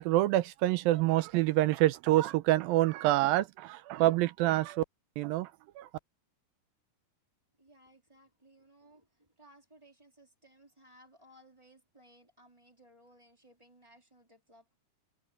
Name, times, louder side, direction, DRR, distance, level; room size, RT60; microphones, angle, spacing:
voice 1, 0.0-4.8 5.2-5.9, right 16 dB, 80° right, 2.2 m, -27 dB
voice 2, 7.6-14.7, right 1 dB, 10° right, 3.0 m, -61 dB
open air
omnidirectional pair, 4.6 m